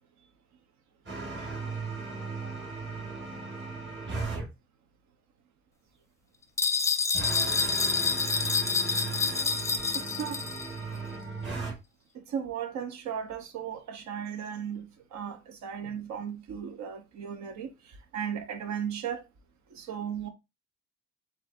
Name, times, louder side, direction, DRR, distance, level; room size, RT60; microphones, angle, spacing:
sound 1, 1.1-4.5 7.1-11.7, right 4 dB, 40° right, 2.0 m, -36 dB
sound 2, 6.6-10.7, left 5 dB, 10° left, 0.6 m, -28 dB
voice 1, 9.9-10.4 12.1-17.7 18.1-19.2 19.7-20.3, right 8 dB, 70° right, 1.0 m, -36 dB
7.7 x 2.7 x 2.5 m
cardioid pair, 130°, 29 cm